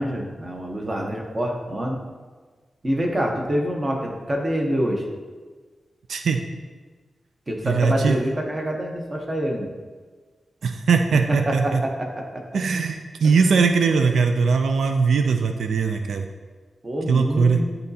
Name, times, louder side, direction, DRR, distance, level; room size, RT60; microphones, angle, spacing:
voice 1, 0.0-2.0 2.8-5.1 7.5-9.7 11.4-12.4 13.8-14.0 16.8-17.6, equal, 25° right, 0 dB, 0.9 m, -26 dB
voice 2, 6.1-6.4 7.6-8.2 10.6-11.8 12.5-16.2 17.1-17.6, right 5 dB, 85° right, 5 dB, 0.4 m, -20 dB
10.5 x 3.9 x 2.8 m, 1.4 s
wide cardioid pair, 140°, 0 cm